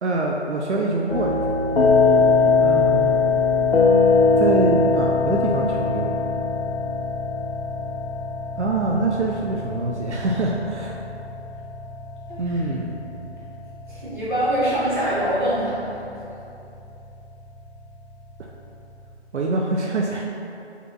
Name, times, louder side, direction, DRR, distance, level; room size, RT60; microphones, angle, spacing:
voice 1, 0.0-1.6 2.6-3.2 4.4-6.1 8.6-10.9 12.4-13.0 18.4-18.5 19.3-20.2, right 2 dB, 85° right, -1 dB, 0.5 m, -25 dB
sound 1, 1.1-19.1, left 4 dB, 60° left, 0.5 m, -22 dB
voice 2, 13.9-16.0, right 1 dB, 45° right, -11 dB, 1.4 m, -24 dB
4.5 x 3.3 x 2.5 m, 2.7 s
figure-of-eight pair, 180°, 34 cm